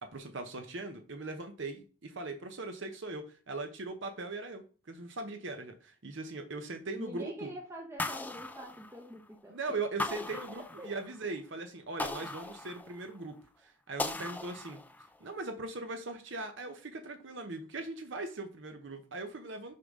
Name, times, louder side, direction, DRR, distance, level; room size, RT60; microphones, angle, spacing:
voice 1, 0.0-7.5 9.5-14.8 15.2-19.7, right 3 dB, 60° right, 6 dB, 0.9 m, -40 dB
voice 2, 6.9-9.8 10.3-10.5 10.8-10.9, equal, 10° right, 0 dB, 0.8 m, -45 dB
sound 1, 8.0-9.3 10.0-11.2 12.0-13.2 14.0-15.2, left 2 dB, 10° left, 0.4 m, -38 dB
6.5 x 5.4 x 3.7 m, 0.37 s
head